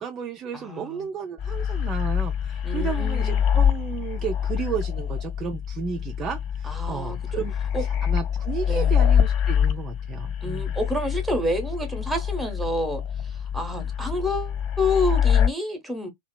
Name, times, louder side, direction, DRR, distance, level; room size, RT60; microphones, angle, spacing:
voice 1, 0.0-7.5 7.8-10.7, right 6 dB, 30° right, 0.3 m, -33 dB
voice 2, 0.5-1.1 2.6-3.5 6.6-7.2 7.7-7.8 8.7-9.0 10.4-13.0 13.5-16.1, left 1 dB, 5° right, 0.8 m, -28 dB
sound 1, 1.4-15.5, left 8 dB, 40° left, 0.4 m, -25 dB
2.7 x 2.1 x 2.2 m
figure-of-eight pair, 90°, 0 cm